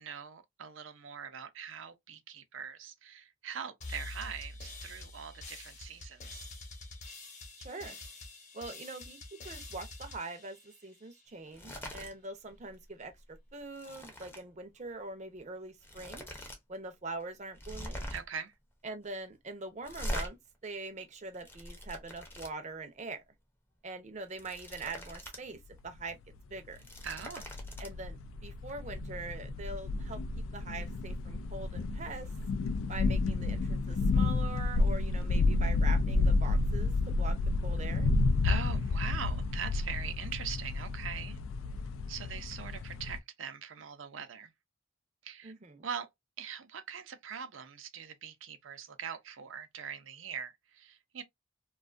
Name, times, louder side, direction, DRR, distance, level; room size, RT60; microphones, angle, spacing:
voice 1, 0.0-6.5 18.1-18.5 27.0-27.5 38.4-41.4 42.1-44.5 45.2-45.5 45.8-46.1 46.4-51.2, right 7 dB, 80° right, 0.5 m, -42 dB
sound 1, 3.8-11.3, left 2 dB, 40° left, 0.9 m, -47 dB
voice 2, 7.6-8.0 8.5-16.3 16.7-18.1 18.8-23.2 23.8-26.2 26.5-26.8 27.8-30.2 30.5-32.3 32.9-38.1 45.4-45.9, right 3 dB, 35° right, 0.5 m, -43 dB
card flipping, 11.5-12.1 12.5-12.7 13.1-14.4 15.4-15.5 15.8-16.6 16.9-17.0 17.5-18.4 19.8-20.3 21.1-22.5 24.2-25.4 25.8-25.9 26.6-27.9, equal, 10° left, 0.6 m, -42 dB
sound 2, 26.4-26.5 26.8-27.1 27.4-43.2, left 3 dB, 90° left, 0.3 m, -30 dB
2.5 x 2.3 x 2.4 m
head